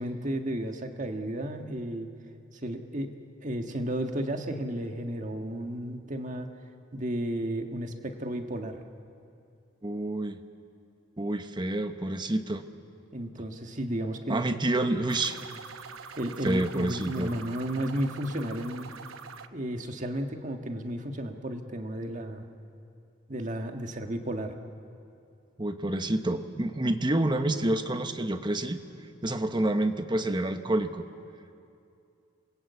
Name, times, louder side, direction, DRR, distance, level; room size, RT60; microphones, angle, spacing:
voice 1, 0.0-2.1 2.6-3.1 3.4-6.5 6.9-8.8 13.1-14.7 16.2-18.9 19.5-22.4 23.3-24.6, right 1 dB, 40° right, 5 dB, 1.6 m, -33 dB
voice 2, 9.8-10.4 11.2-12.6 14.3-15.4 16.4-17.3 25.6-28.8 29.2-31.1, right 1 dB, 20° right, 8 dB, 1.0 m, -28 dB
sound 1, 15.1-19.5, right 5 dB, 85° right, 1.0 m, -44 dB
28.0 x 21.0 x 8.3 m, 2.6 s
head